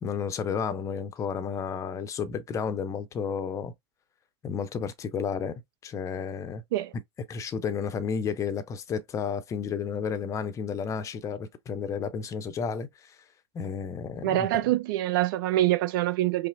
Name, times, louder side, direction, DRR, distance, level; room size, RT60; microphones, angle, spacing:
voice 1, 0.0-3.7 4.4-6.6 7.3-12.9 13.5-14.5, left 6 dB, 20° left, 0.6 m, -32 dB
voice 2, 14.2-16.5, right 14 dB, 50° right, 0.6 m, -25 dB
5.5 x 2.0 x 2.6 m
figure-of-eight pair, 95°, 15 cm